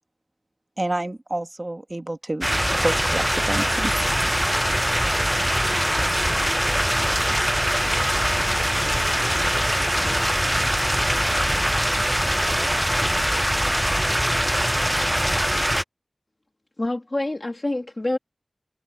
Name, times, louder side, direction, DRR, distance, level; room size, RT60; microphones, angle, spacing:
voice 1, 0.8-2.5 2.7-3.9, right 1 dB, 40° right, 1.5 m, -28 dB
sound 1, 2.4-15.8, equal, 5° right, 0.3 m, -22 dB
voice 2, 4.0-10.4, left 3 dB, 70° left, 4.2 m, -45 dB
voice 3, 16.8-18.2, left 2 dB, 45° left, 1.6 m, -26 dB
wide cardioid pair, 60°, 0 cm